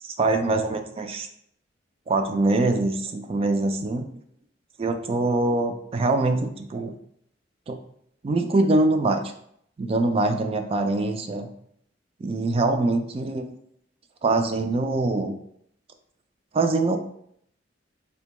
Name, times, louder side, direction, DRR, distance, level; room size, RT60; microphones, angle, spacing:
voice 1, 0.0-1.3 2.1-4.1 4.8-6.9 7.7-7.8 8.2-9.2 9.8-11.5 12.2-13.5 14.2-15.3 16.5-17.0, right 2 dB, 30° right, 6 dB, 0.3 m, -23 dB
4.2 x 2.2 x 2.9 m, 0.69 s
head